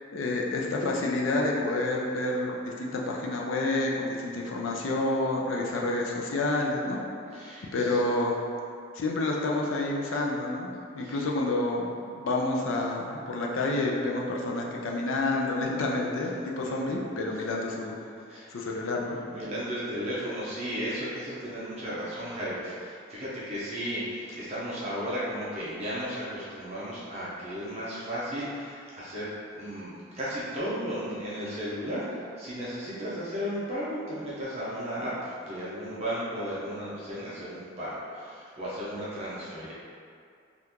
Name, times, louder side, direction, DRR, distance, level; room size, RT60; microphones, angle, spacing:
voice 1, 0.1-7.0 7.7-8.4 8.9-18.0 18.5-19.2, left 2 dB, 85° left, -1 dB, 0.5 m, -29 dB
voice 2, 7.3-8.0 11.0-11.2 17.4-17.5 18.3-18.7 19.3-39.7, equal, 35° right, -9 dB, 0.6 m, -35 dB
2.8 x 2.5 x 3.5 m, 2.4 s
head